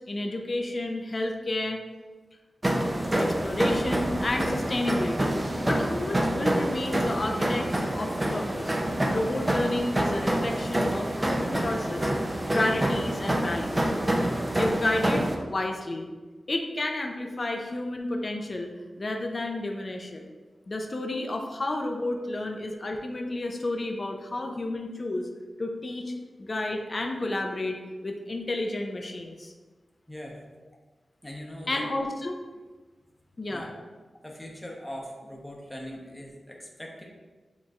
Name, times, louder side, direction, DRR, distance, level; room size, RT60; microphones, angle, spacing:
voice 1, 0.1-1.8 3.2-8.8 9.1-12.1 12.5-13.9 14.6-16.1 16.5-18.7 19.0-20.2 20.7-25.2 25.6-26.1 26.4-29.5 31.7-32.4 33.4-33.7, left 2 dB, 40° left, 2 dB, 0.4 m, -31 dB
sound 1, 2.6-15.3, right 1 dB, 20° right, 0.5 m, -27 dB
voice 2, 30.1-30.4 31.2-31.9 33.5-33.8 34.2-37.1, equal, 5° left, -2 dB, 0.8 m, -41 dB
7.3 x 3.0 x 2.4 m, 1.3 s
wide cardioid pair, 105°, 0 cm